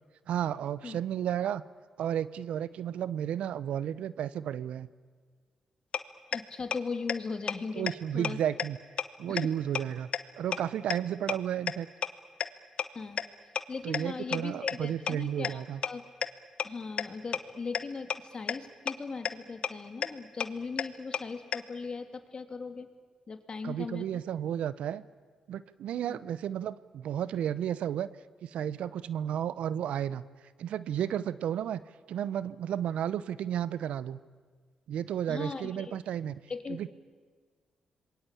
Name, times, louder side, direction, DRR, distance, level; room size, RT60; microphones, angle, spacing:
voice 1, 0.3-1.6 2.0-4.9 7.8-8.8 9.2-10.1 10.4-11.9 13.8-15.8 23.6-25.0 25.5-28.1 28.4-30.2 30.6-31.8 32.1-34.2 34.9-36.4 36.7-36.9, right 10 dB, 75° right, 17 dB, 0.8 m, -32 dB
sound 1, 5.9-6.0 6.3-6.4 6.7-6.8 7.1-7.2 7.5-7.6 7.9-8.0 8.2-8.3 8.6-8.7 9.0-9.1 9.4-9.5 9.8-9.9 10.1-10.2 10.5-10.6 10.9-11.0 11.3-11.4 11.7-11.8 12.0-12.1 12.4-12.5 12.8-12.9 13.2-13.3 13.6-13.7 13.9-14.0 14.3-14.4 14.7-14.8 15.1-15.2 15.4-15.5 15.8-15.9 16.2-16.3 16.6-16.7 17.0-17.1 17.3-17.4 17.7-17.8 18.1-18.2 18.5-18.6 18.9-19.0 19.3-19.4 19.6-19.7 20.0-20.1 20.4-20.5 20.8-20.9 21.1-21.2 21.5-21.6, left 8 dB, 65° left, 1.1 m, -29 dB
voice 2, 6.3-8.4 9.3-9.4 12.9-13.2 13.7-16.0 16.6-22.9 23.3-24.2 26.0-26.2 35.3-36.0 36.5-36.8, left 4 dB, 45° left, 8 dB, 2.9 m, -39 dB
26.5 x 22.0 x 8.6 m, 1.5 s
supercardioid pair, 50°, 2 cm